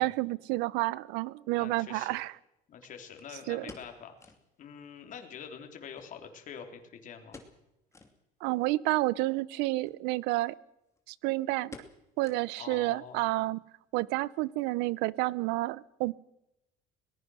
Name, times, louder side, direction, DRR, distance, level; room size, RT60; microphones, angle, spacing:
voice 1, 0.0-2.3 3.5-3.7 8.4-10.5 11.1-11.8 12.2-13.6 13.9-16.1, right 19 dB, 85° right, 22 dB, 0.7 m, -30 dB
sound 1, 1.1-1.2 3.2-4.5 4.8-4.9 5.2-5.3 6.0-6.8 7.3-7.7 7.9-8.2 8.7-8.8 9.7-10.0 10.4-10.5 10.8-11.2 11.7-12.8 13.1-13.2 13.8-14.1 14.4-14.5, left 3 dB, 15° left, 2.7 m, -51 dB
voice 2, 1.6-2.2 2.7-7.4 12.6-13.3, left 7 dB, 50° left, 4 dB, 3.5 m, -46 dB
21.5 x 19.5 x 6.4 m, 0.86 s
cardioid pair, 120°, 17 cm